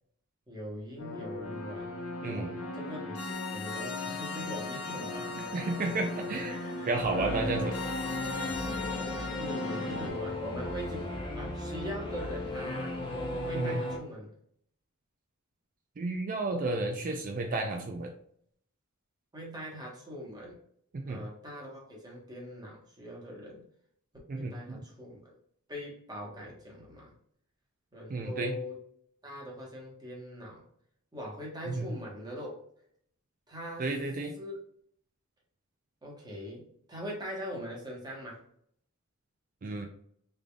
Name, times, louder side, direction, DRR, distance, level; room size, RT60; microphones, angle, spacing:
voice 1, 0.5-1.9 2.2-5.6 6.5-7.8 8.9-13.0 13.4-14.3 19.3-20.6 21.1-23.6 24.4-25.4 25.7-27.1 27.9-28.8 29.2-30.6 31.1-32.6 33.5-33.9 34.4-34.5 36.0-38.4, equal, 20° right, -3 dB, 1.2 m, -42 dB
sound 1, 1.0-10.1, left 3 dB, 85° left, 0.8 m, -37 dB
voice 2, 2.2-2.6 5.3-6.6 6.9-7.7 13.5-13.8 16.0-18.1 20.9-21.2 24.3-24.8 28.1-28.5 31.7-31.9 33.8-34.4 39.6-39.9, right 2 dB, 40° right, 4 dB, 0.4 m, -32 dB
Singing / Musical instrument, 7.0-14.0, left 1 dB, 25° left, 0.6 m, -36 dB
3.7 x 3.4 x 2.3 m, 0.66 s
head